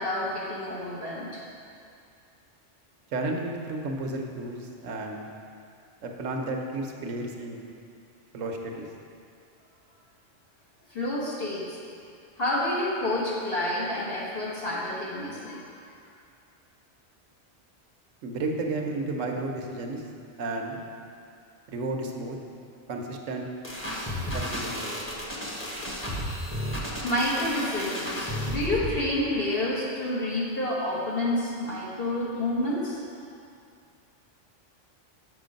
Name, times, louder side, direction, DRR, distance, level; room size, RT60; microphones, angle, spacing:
voice 1, 0.0-1.4 10.9-11.8 12.4-15.6 26.8-33.0, left 1 dB, 50° left, -6 dB, 1.4 m, -29 dB
voice 2, 3.1-5.2 6.0-7.6 8.3-8.8 18.2-20.0 20.4-20.8 21.7-22.4 22.9-23.5 24.3-25.0, right 2 dB, 85° right, 2 dB, 1.2 m, -32 dB
sound 1, 23.6-28.9, equal, 10° left, 1.0 m, -33 dB
6.7 x 6.3 x 5.1 m, 2.4 s
omnidirectional pair, 1.3 m